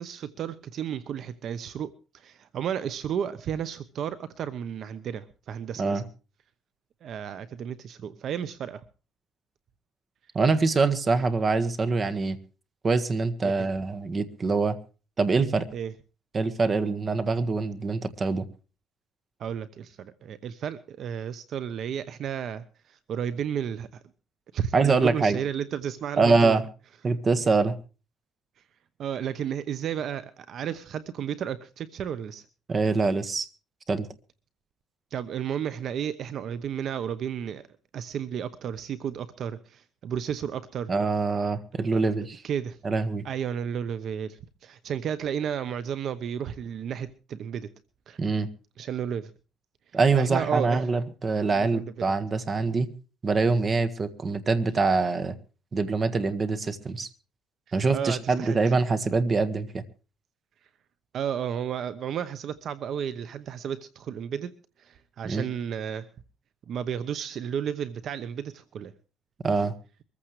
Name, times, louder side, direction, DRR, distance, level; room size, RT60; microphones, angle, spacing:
voice 1, 0.0-6.0 7.0-8.8 13.4-13.7 15.7-15.9 19.4-24.0 24.5-26.6 29.0-32.4 35.1-37.7 37.9-40.9 41.9-42.0 42.4-42.8 43.2-47.7 48.1-48.2 48.8-49.3 50.1-50.9 51.5-52.0 57.7-58.7 61.1-64.5 64.8-66.1 66.7-68.9, right 8 dB, 55° right, 14 dB, 0.9 m, -33 dB
voice 2, 10.3-12.4 12.8-14.7 15.2-15.7 16.3-18.5 24.7-25.4 26.2-26.6 27.0-27.7 32.7-33.5 33.9-34.1 40.9-42.4 42.8-43.2 48.2-48.5 49.9-52.9 53.2-55.3 55.7-57.1 57.7-59.8 65.2-65.4 69.4-69.7, right 4 dB, 30° right, 11 dB, 1.6 m, -24 dB
23.0 x 15.0 x 3.2 m, 0.35 s
cardioid pair, 125°, 0 cm